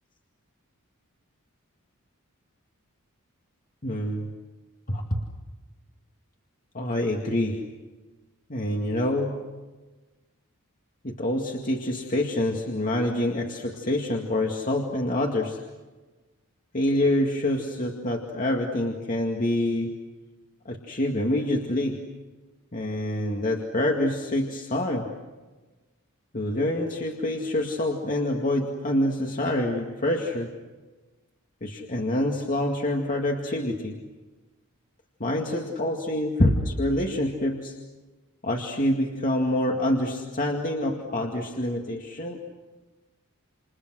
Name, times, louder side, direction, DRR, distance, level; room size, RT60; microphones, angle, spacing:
voice 1, 3.8-4.3 4.9-5.3 6.7-7.6 8.5-9.3 11.0-15.6 16.7-19.9 20.7-22.0 22.7-25.1 26.3-30.5 31.6-34.0 35.2-37.8 38.4-42.4, left 1 dB, 40° left, 0 dB, 2.2 m, -26 dB
29.0 x 29.0 x 6.3 m, 1.2 s
head